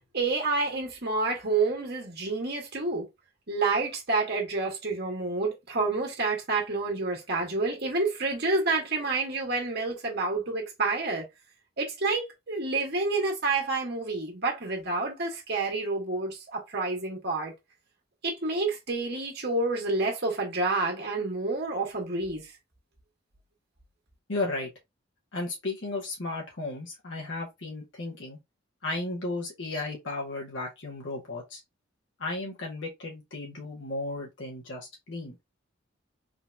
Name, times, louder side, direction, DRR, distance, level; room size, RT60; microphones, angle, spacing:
voice 1, 0.1-3.1 3.5-11.2 11.8-17.5 18.2-22.5, right 3 dB, 55° right, 1.5 m, -29 dB
voice 2, 24.3-24.7 25.3-28.4 28.8-31.6 32.2-35.3, left 2 dB, 70° left, 1.3 m, -34 dB
3.8 x 2.9 x 2.4 m
head